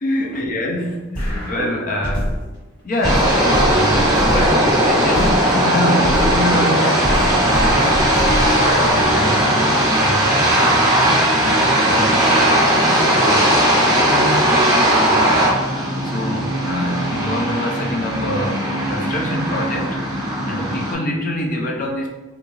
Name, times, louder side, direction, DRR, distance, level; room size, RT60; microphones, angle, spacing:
voice 1, 0.0-2.4 2.8-9.7 9.9-20.0 20.4-22.1, left 1 dB, 40° left, 0 dB, 0.4 m, -26 dB
sound 1, 1.1-2.6 3.0-6.6 7.0-9.1, equal, 20° left, 1.2 m, -25 dB
sound 2, 3.0-20.9, right 1 dB, 15° right, 0.7 m, -17 dB
3.8 x 2.3 x 2.9 m, 1.1 s
head